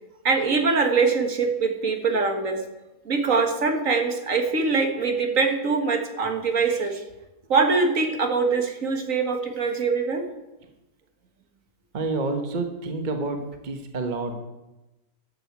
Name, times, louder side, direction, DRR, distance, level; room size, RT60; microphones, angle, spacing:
voice 1, 0.2-2.6 3.1-7.0 7.5-10.2, right 4 dB, 60° right, 5 dB, 1.9 m, -23 dB
voice 2, 11.9-14.3, right 3 dB, 35° right, 5 dB, 1.2 m, -28 dB
11.5 x 7.7 x 8.2 m, 1.0 s
omnidirectional pair, 1.6 m